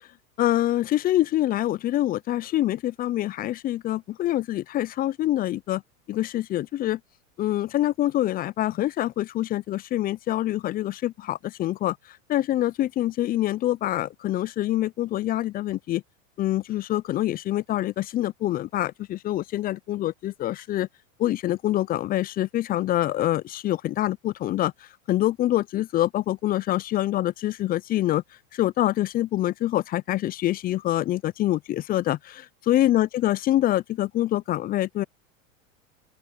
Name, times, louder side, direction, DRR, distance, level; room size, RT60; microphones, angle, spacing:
voice 1, 0.4-5.8 6.1-7.0 7.4-12.0 12.3-16.0 16.4-20.9 21.2-24.7 25.1-28.2 28.5-35.0, left 14 dB, 25° left, 0.4 m, -25 dB
open air
hypercardioid pair, 100°, 41 cm